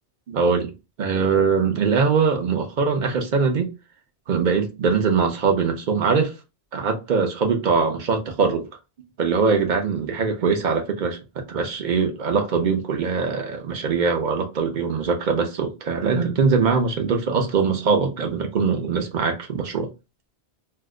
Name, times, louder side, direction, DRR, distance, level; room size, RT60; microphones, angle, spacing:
voice 1, 0.3-0.7 1.0-3.7 4.3-6.3 6.7-8.7 9.2-19.9, right 5 dB, 50° right, 0.8 m, -22 dB
2.8 x 2.2 x 3.6 m
omnidirectional pair, 1.2 m